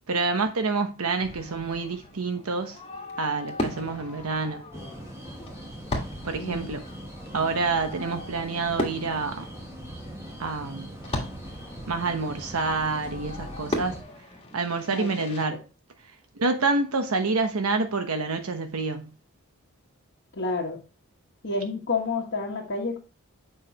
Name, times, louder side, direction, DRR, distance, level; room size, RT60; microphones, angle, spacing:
voice 1, 0.1-2.8 3.2-4.6 6.2-6.8 7.3-9.5 10.4-10.9 11.9-13.9 14.5-15.6 16.4-19.1, right 3 dB, 85° right, 1.0 m, -27 dB
Fireworks, 1.2-15.4, left 1 dB, 25° left, 1.5 m, -38 dB
sound 1, 4.7-14.0, equal, 15° right, 1.2 m, -41 dB
voice 2, 6.4-6.7 14.9-15.6 20.3-20.8 21.4-23.0, left 3 dB, 55° left, 1.3 m, -30 dB
7.1 x 5.4 x 2.9 m
head